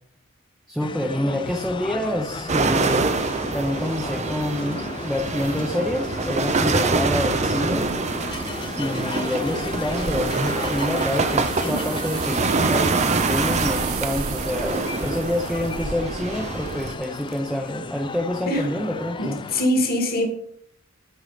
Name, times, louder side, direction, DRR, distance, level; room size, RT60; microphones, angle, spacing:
voice 1, 0.7-3.1 3.5-8.3 8.8-19.4, left 1 dB, ahead, 0.8 m, -27 dB
sound 1, 0.8-19.7, left 4 dB, 25° left, 0.4 m, -35 dB
sound 2, 2.5-16.9, right 3 dB, 35° right, 0.7 m, -25 dB
sound 3, 7.6-17.5 18.0-18.2 18.7-18.8, right 11 dB, 85° right, 0.9 m, -38 dB
voice 2, 19.2-20.3, left 1 dB, 45° left, 2.2 m, -23 dB
11.5 x 4.8 x 5.0 m
head